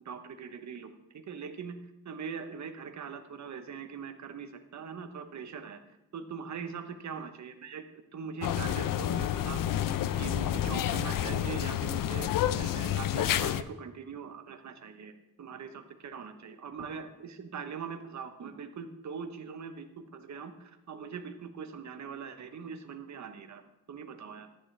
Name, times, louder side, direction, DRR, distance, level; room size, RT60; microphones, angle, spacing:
voice 1, 0.0-1.8 2.0-5.8 6.1-7.9 8.1-12.3 12.6-15.1 15.4-23.6 23.9-24.5, right 6 dB, 55° right, 8 dB, 0.9 m, -42 dB
sound 1, 8.4-13.6, left 11 dB, 70° left, 0.5 m, -29 dB
13.5 x 9.8 x 3.3 m, 0.90 s
wide cardioid pair, 160°, 35 cm